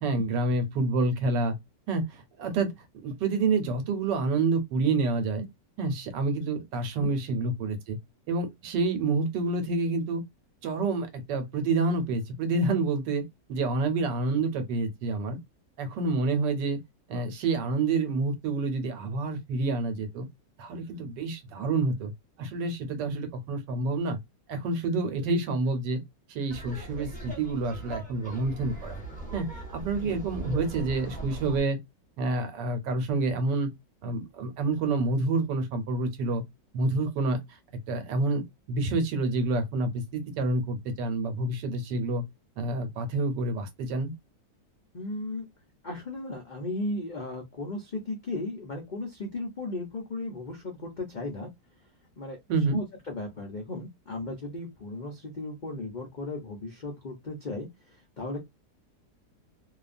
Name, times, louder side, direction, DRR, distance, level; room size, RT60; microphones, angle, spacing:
voice 1, 0.0-1.6 1.9-2.7 3.0-5.5 5.8-8.0 8.3-10.2 10.6-13.2 13.5-15.4 15.8-16.8 17.1-20.3 20.6-22.1 22.4-24.2 24.5-26.0 26.3-29.0 29.3-31.8 32.2-33.7 34.0-36.4 36.7-37.4 37.9-42.2 42.6-44.1 52.5-52.8, right 3 dB, 85° right, 1.4 m, -28 dB
Laughter, 26.5-31.6, right 2 dB, 5° left, 0.8 m, -40 dB
voice 2, 44.9-45.4 45.8-51.5 52.2-52.4 52.7-57.7 58.2-58.4, left 2 dB, 70° left, 0.4 m, -36 dB
2.9 x 2.3 x 2.5 m
omnidirectional pair, 1.9 m